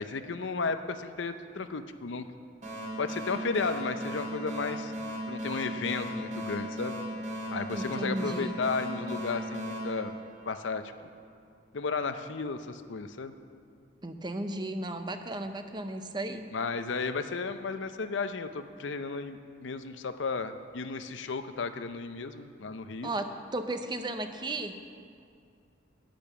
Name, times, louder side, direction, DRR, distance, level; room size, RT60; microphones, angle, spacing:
voice 1, 0.0-2.3 3.0-4.9 5.3-7.0 7.5-10.2 10.5-10.8 11.7-13.3 16.5-23.1, left 4 dB, 75° left, 10 dB, 0.6 m, -34 dB
sound 1, 2.6-10.9, equal, 40° right, 2.8 m, -37 dB
voice 2, 7.7-8.6 14.0-16.5 23.0-24.7, right 2 dB, 25° right, 7 dB, 0.6 m, -35 dB
10.0 x 9.1 x 6.8 m, 2.3 s
head